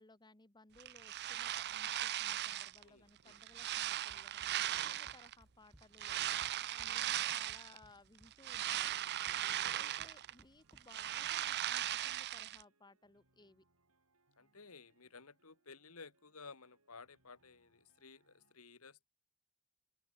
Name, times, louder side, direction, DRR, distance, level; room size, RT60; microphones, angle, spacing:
voice 1, 0.0-4.5 4.8-6.2 6.8-8.9 9.7-13.6, left 2 dB, 20° left, 1.6 m, -62 dB
sound 1, 0.8-2.8 3.3-5.3 5.9-7.8 8.2-10.4 10.7-12.6, right 12 dB, 50° right, 0.5 m, -38 dB
voice 2, 2.8-3.3 6.7-7.0 9.5-9.7 14.4-19.1, left 4 dB, 70° left, 1.9 m, -56 dB
Run, 4.1-11.1, equal, ahead, 2.1 m, -65 dB
sound 2, 8.7-18.5, right 2 dB, 70° right, 6.5 m, -79 dB
open air
head